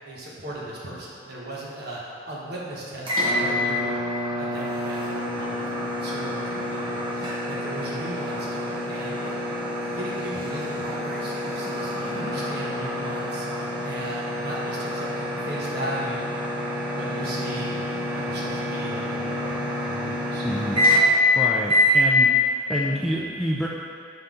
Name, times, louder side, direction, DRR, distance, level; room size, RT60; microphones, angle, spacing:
voice 1, 0.0-4.0 4.3-9.4 9.9-16.3 16.8-20.4, right 1 dB, 50° right, -5 dB, 1.2 m, -37 dB
sound 1, 3.0-21.3 21.7-22.0, left 1 dB, 25° right, 1.1 m, -27 dB
voice 2, 20.4-20.8 21.1-22.4 22.7-23.7, equal, ahead, -5 dB, 0.3 m, -28 dB
5.7 x 5.5 x 3.8 m, 2.4 s
head